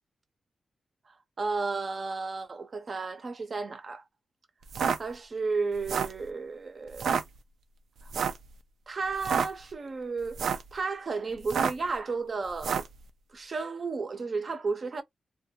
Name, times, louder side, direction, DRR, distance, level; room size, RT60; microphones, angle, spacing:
voice 1, 1.1-4.0 5.0-7.2 8.0-8.1 8.9-12.9 13.3-15.0, right 4 dB, 45° right, 0.6 m, -33 dB
sound 1, 4.6-5.0 5.7-6.2 6.9-7.2 8.1-8.4 9.1-9.5 10.2-10.7 11.4-11.9 12.6-12.9, right 6 dB, 85° right, 0.4 m, -28 dB
2.3 x 2.2 x 2.8 m
wide cardioid pair, 100°, 0 cm